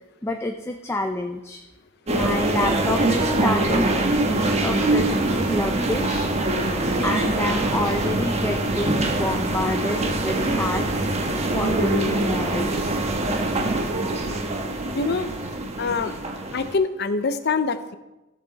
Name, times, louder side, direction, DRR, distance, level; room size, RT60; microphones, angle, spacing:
voice 1, 0.2-1.6 2.1-6.3 7.0-11.1 11.5-13.0, left 1 dB, 15° left, 4 dB, 0.5 m, -28 dB
sound 1, 2.1-16.7, right 2 dB, 35° right, 1.1 m, -24 dB
sound 2, 7.8-9.2, equal, 50° right, 3.5 m, -35 dB
voice 2, 14.9-15.3 15.8-16.1 16.5-17.9, left 4 dB, 55° left, 11 dB, 0.6 m, -24 dB
15.0 x 6.8 x 4.1 m, 1.0 s
head